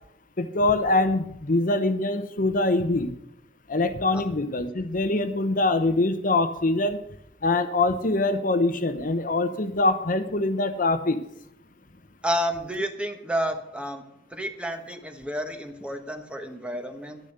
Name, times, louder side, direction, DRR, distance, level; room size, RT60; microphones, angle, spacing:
voice 1, 0.4-3.1 3.7-7.0 7.4-11.2, left 2 dB, 50° left, 9 dB, 0.9 m, -24 dB
voice 2, 12.2-14.0 14.3-17.2, equal, 5° right, 6 dB, 1.2 m, -30 dB
10.5 x 10.5 x 6.6 m, 0.75 s
head